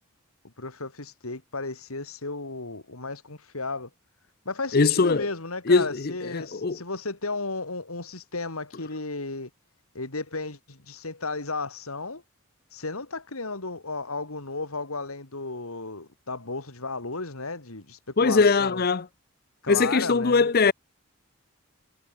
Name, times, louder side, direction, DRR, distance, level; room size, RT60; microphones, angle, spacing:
voice 1, 0.4-3.9 4.4-9.5 9.9-12.2 12.7-18.8 19.6-20.5, left 3 dB, 90° left, 3.2 m, -34 dB
voice 2, 4.7-5.3 5.7-6.8 18.2-19.1 19.7-20.7, left 4 dB, 45° left, 0.6 m, -21 dB
head